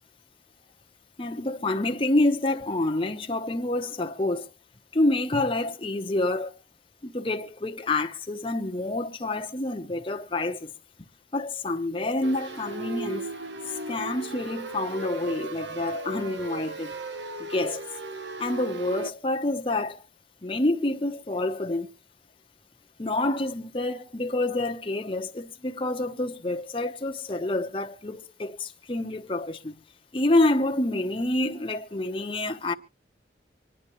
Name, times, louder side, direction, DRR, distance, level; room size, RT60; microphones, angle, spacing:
voice 1, 1.2-4.5 4.9-6.5 7.0-10.7 11.3-13.3 13.9-16.9 17.4-17.8 18.4-20.0 20.4-21.9 23.0-29.8 30.1-32.7, left 2 dB, 30° left, 0.8 m, -27 dB
sound 1, 12.2-19.1, right 2 dB, 70° right, 1.1 m, -37 dB
25.5 x 9.9 x 3.0 m
head